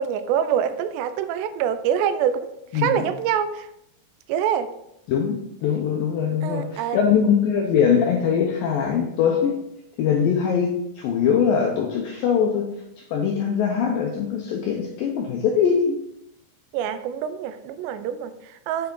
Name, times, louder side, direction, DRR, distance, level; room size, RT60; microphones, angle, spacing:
voice 1, 0.0-3.7 4.3-4.7 6.4-7.0 16.7-18.9, right 9 dB, 85° right, 11 dB, 2.7 m, -25 dB
voice 2, 2.7-3.0 5.1-9.6 10.0-12.7 13.0-16.0, left 7 dB, 85° left, 1 dB, 2.0 m, -22 dB
7.7 x 5.7 x 3.8 m, 0.81 s
omnidirectional pair, 4.9 m